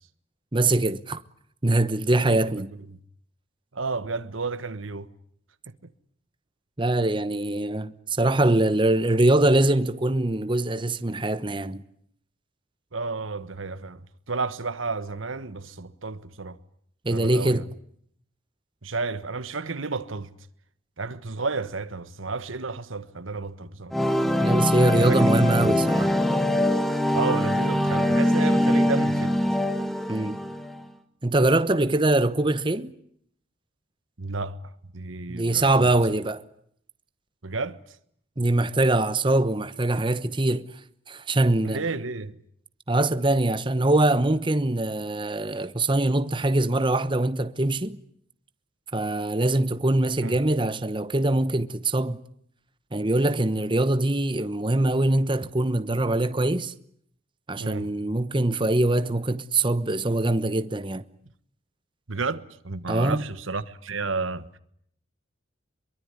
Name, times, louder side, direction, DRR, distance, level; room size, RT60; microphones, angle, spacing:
voice 1, 0.5-1.2 1.6-2.7 6.8-11.8 17.0-17.6 24.4-26.1 30.1-30.4 31.2-32.9 35.3-36.4 38.4-40.7 41.1-41.8 42.9-48.0 48.9-52.2 52.9-56.7 57.5-61.0 62.9-63.2, right 2 dB, 25° right, 1.1 m, -23 dB
voice 2, 2.3-3.0 3.7-5.1 5.7-5.9 12.9-14.0 14.3-16.6 17.1-17.7 18.8-20.3 21.0-24.0 24.9-25.8 27.1-29.4 34.2-34.6 34.9-35.9 37.4-37.8 41.6-42.4 50.2-50.4 57.6-57.9 62.1-64.6, right 3 dB, 90° right, 1.5 m, -32 dB
sound 1, 23.9-30.8, left 1 dB, ahead, 1.8 m, -23 dB
25.0 x 23.0 x 9.7 m
head